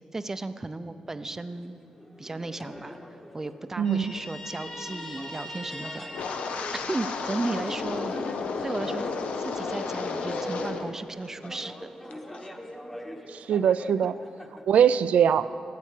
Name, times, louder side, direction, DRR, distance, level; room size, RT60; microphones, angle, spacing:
voice 1, 0.1-1.8 2.2-3.0 3.3-6.1 6.9-8.2 8.6-9.1 9.4-11.7, right 2 dB, 20° right, 11 dB, 0.5 m, -34 dB
sound 1, 1.2-14.6, equal, 10° left, 1.1 m, -42 dB
Guitar, 3.8-7.4, left 1 dB, 50° left, 2.7 m, -41 dB
voice 2, 3.8-4.1 13.3-14.1 14.7-15.5, right 8 dB, 85° right, 12 dB, 0.4 m, -22 dB
Wind, 6.1-11.0 11.2-11.7 12.1-12.4, left 5 dB, 85° left, 0.9 m, -33 dB
13.5 x 8.5 x 8.3 m, 2.6 s
wide cardioid pair, 130°, 2 cm